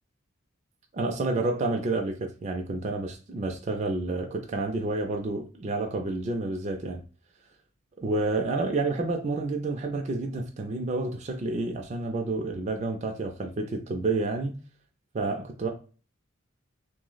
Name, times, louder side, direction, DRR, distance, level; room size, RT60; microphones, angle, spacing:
voice 1, 0.9-7.0 8.0-14.6 15.1-15.7, right 2 dB, 35° right, 0.3 m, -29 dB
2.6 x 2.0 x 3.9 m
head